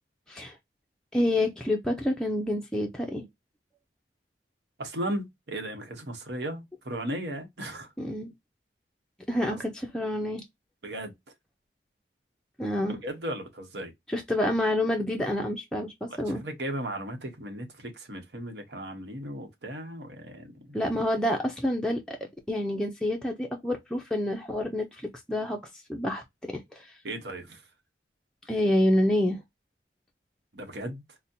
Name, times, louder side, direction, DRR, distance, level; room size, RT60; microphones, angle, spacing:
voice 1, 1.1-3.3 8.0-8.3 9.3-10.4 12.6-13.0 14.1-16.4 20.7-22.2 22.5-25.6 25.9-26.9 28.5-29.4, left 1 dB, 5° left, 0.4 m, -28 dB
voice 2, 4.8-7.9 9.5-9.6 10.8-11.1 12.9-13.9 16.1-20.8 27.0-27.6 30.5-31.0, right 1 dB, 75° right, 1.0 m, -36 dB
4.1 x 2.1 x 2.6 m
head